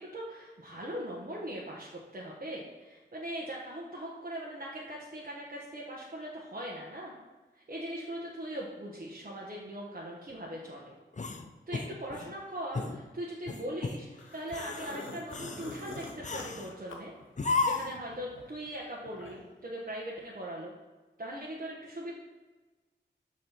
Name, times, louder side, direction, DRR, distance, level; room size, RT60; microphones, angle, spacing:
voice 1, 0.0-7.1 7.5-10.9 11.7-17.1 17.6-20.7 21.2-22.1, right 1 dB, 45° right, -4 dB, 1.1 m, -40 dB
sound 1, 11.1-12.3 12.7-13.0 13.5-14.0 14.4-14.9 15.3-15.7 16.2-16.7 17.4-18.0, left 3 dB, 40° left, 0.6 m, -33 dB
sound 2, 14.2-17.7 18.1-19.6, left 2 dB, 90° left, 0.9 m, -45 dB
6.8 x 3.2 x 5.9 m, 1.3 s
cardioid pair, 45°, 19 cm